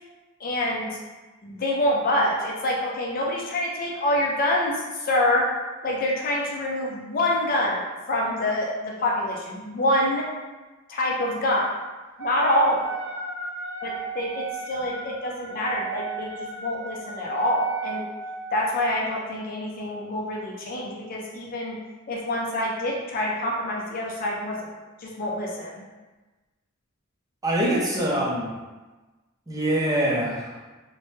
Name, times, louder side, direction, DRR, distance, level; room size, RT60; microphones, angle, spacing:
voice 1, 0.4-1.0 1.4-5.5 5.8-10.2 10.9-11.7 12.2-13.0 13.8-18.1 18.5-21.8 22.1-24.6 25.0-25.8, left 1 dB, 45° left, -2 dB, 0.4 m, -26 dB
Wind instrument woodwind instrument, 12.2-18.6, right 4 dB, 90° right, 0.7 m, -34 dB
voice 2, 27.4-28.6 29.5-30.5, right 1 dB, 20° right, -4 dB, 0.5 m, -24 dB
3.1 x 2.1 x 2.7 m, 1.2 s
head